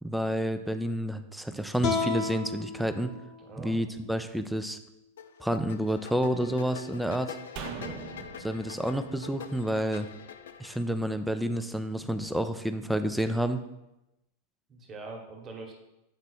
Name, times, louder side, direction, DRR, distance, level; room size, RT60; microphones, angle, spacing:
voice 1, 0.0-3.1 3.6-4.8 5.4-7.4 8.4-10.1 10.6-13.6, equal, ahead, 9 dB, 0.5 m, -29 dB
sound 1, 1.8-5.0, left 5 dB, 35° left, 0.9 m, -34 dB
voice 2, 3.4-3.7 7.7-8.0 14.7-15.7, right 3 dB, 25° right, 1 dB, 1.3 m, -43 dB
sound 2, 5.2-10.8, left 8 dB, 60° left, 0.4 m, -45 dB
sound 3, 7.6-10.9 11.2-11.3, right 7 dB, 45° right, 0.7 m, -43 dB
7.6 x 4.4 x 4.2 m, 0.93 s
figure-of-eight pair, 90°, 0 cm